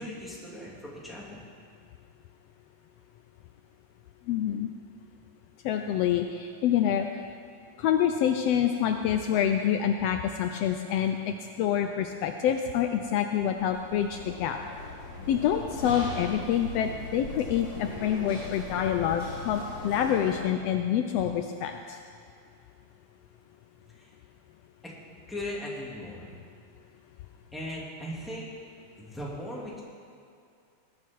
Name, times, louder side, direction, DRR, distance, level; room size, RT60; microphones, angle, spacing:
voice 1, 0.0-1.4 24.0-24.1 25.3-26.3 27.5-28.5 29.0-29.8, left 1 dB, ahead, -6 dB, 2.3 m, -38 dB
voice 2, 4.3-4.7 5.6-7.1 7.8-14.6 15.3-22.0, left 9 dB, 90° left, 5 dB, 1.4 m, -27 dB
sound 1, 13.6-20.4, left 2 dB, 45° left, 3.6 m, -40 dB
20.0 x 9.6 x 4.6 m, 2.3 s
omnidirectional pair, 3.5 m